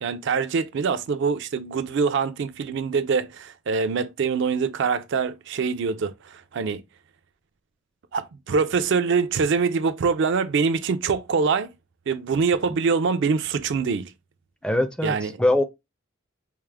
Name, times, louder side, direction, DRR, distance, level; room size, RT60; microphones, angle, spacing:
voice 1, 0.0-6.8 8.1-11.7 12.1-14.1 15.0-15.3, right 5 dB, 60° right, 0.4 m, -24 dB
voice 2, 14.6-15.6, left 1 dB, 5° left, 0.4 m, -22 dB
4.6 x 2.0 x 3.3 m
head